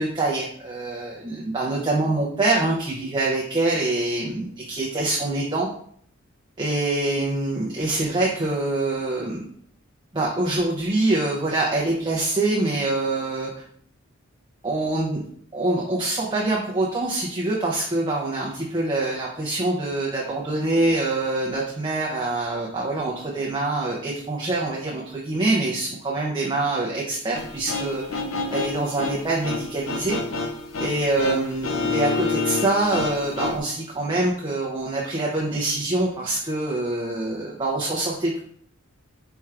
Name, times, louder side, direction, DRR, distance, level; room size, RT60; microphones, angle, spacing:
voice 1, 0.0-5.7 6.6-9.4 10.1-13.5 14.6-15.2 15.5-28.2 28.5-30.2 30.8-38.4, right 2 dB, 20° right, -3 dB, 0.6 m, -25 dB
sound 1, 27.3-33.6, left 4 dB, 70° left, 0.5 m, -29 dB
4.5 x 4.4 x 2.4 m, 0.62 s
head